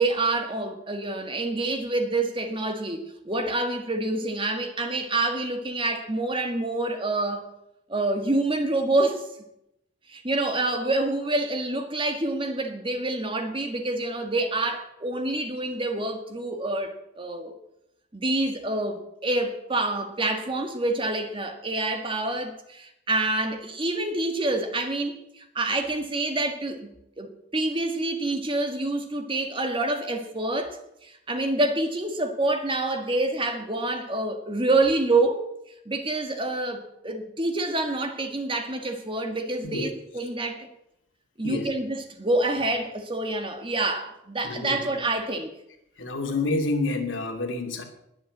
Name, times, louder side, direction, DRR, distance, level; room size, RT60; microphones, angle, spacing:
voice 1, 0.0-7.5 7.9-9.3 10.1-17.5 18.1-26.9 27.2-35.5 35.8-40.7 41.4-45.5, right 2 dB, 25° right, 1.7 m, -27 dB
voice 2, 44.4-44.8 46.0-47.8, left 2 dB, 75° left, 2.6 m, -28 dB
21.0 x 7.0 x 7.9 m
head